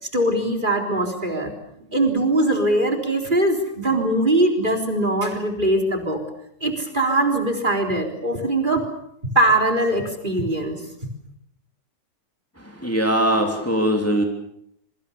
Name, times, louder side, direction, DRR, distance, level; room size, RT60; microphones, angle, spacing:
voice 1, 0.1-1.5 1.9-6.2 6.6-8.9 9.4-10.8, right 1 dB, 25° right, 6 dB, 4.0 m, -21 dB
voice 2, 12.8-14.2, right 1 dB, 10° left, 3 dB, 3.1 m, -20 dB
27.0 x 24.0 x 7.0 m, 0.72 s
omnidirectional pair, 1.9 m